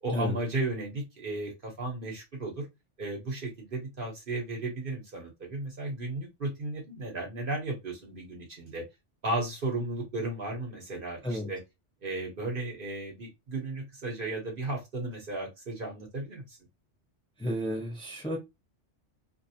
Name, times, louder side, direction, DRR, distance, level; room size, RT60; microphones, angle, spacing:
voice 1, 0.0-2.7 3.0-8.8 9.2-11.6 12.0-16.6, right 2 dB, 50° right, 1.0 m, -34 dB
voice 2, 17.4-18.4, equal, 5° left, 0.8 m, -32 dB
2.7 x 2.0 x 2.7 m
omnidirectional pair, 1.2 m